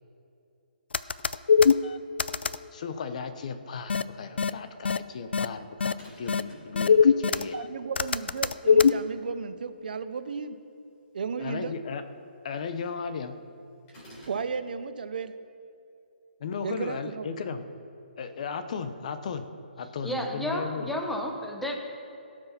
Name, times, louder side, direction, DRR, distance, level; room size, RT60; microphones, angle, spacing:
sound 1, 0.9-1.7 2.2-2.6 3.9-4.0 4.4-4.5 4.8-5.0 5.3-5.4 5.8-5.9 6.3-6.4 6.8-7.4 8.0-8.9, left 6 dB, 90° left, 0.4 m, -20 dB
voice 1, 2.7-7.5 11.4-12.0 12.4-13.4 16.4-17.7 18.2-19.5 19.8-20.9, left 5 dB, 40° left, 9 dB, 0.8 m, -35 dB
sound 2, 6.0-6.8 13.9-14.5, equal, 20° left, 3.3 m, -49 dB
voice 2, 7.4-10.6 11.1-11.7 14.3-15.3 16.6-17.3, right 5 dB, 60° right, 11 dB, 0.8 m, -34 dB
voice 3, 20.0-21.8, left 1 dB, 5° left, 1 dB, 0.8 m, -31 dB
17.5 x 6.2 x 5.7 m, 2.6 s
hypercardioid pair, 165°, 6 cm